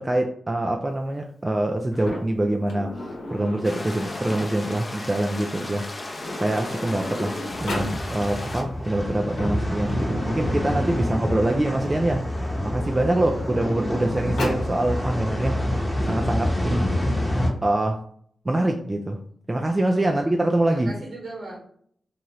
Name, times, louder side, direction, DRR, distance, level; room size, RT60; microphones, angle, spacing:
voice 1, 0.0-2.9 3.3-6.1 6.4-12.2 12.6-15.6 16.0-17.0 17.6-18.0 18.5-19.2 19.5-20.9, right 1 dB, 25° right, 0.3 m, -25 dB
Sliding door, 1.9-4.8 5.8-5.9 6.1-8.0 9.1-11.6 12.4-14.7, left 1 dB, 85° left, 0.8 m, -35 dB
sound 1, 3.6-8.6, left 2 dB, 35° left, 0.6 m, -36 dB
sound 2, 7.5-17.5, left 1 dB, 15° left, 0.9 m, -27 dB
voice 2, 13.1-13.7 19.9-20.4 20.7-21.6, right 2 dB, 60° right, 1.3 m, -39 dB
2.8 x 2.4 x 3.0 m
cardioid pair, 55°, 0 cm